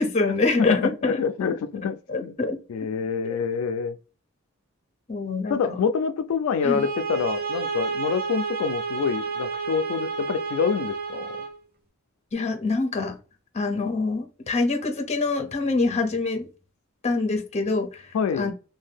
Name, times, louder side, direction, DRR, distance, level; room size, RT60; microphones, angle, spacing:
voice 1, 0.0-1.6 2.1-2.6 3.3-3.4 5.1-5.8 6.6-6.9 12.3-13.2 13.5-16.5 17.0-18.5, left 3 dB, 30° left, 0.6 m, -25 dB
voice 2, 0.7-2.3 2.7-4.0 5.5-11.3 18.1-18.5, left 6 dB, 75° left, 0.3 m, -26 dB
sound 1, 6.6-11.6, right 5 dB, 45° right, 0.5 m, -30 dB
2.6 x 2.2 x 3.4 m
head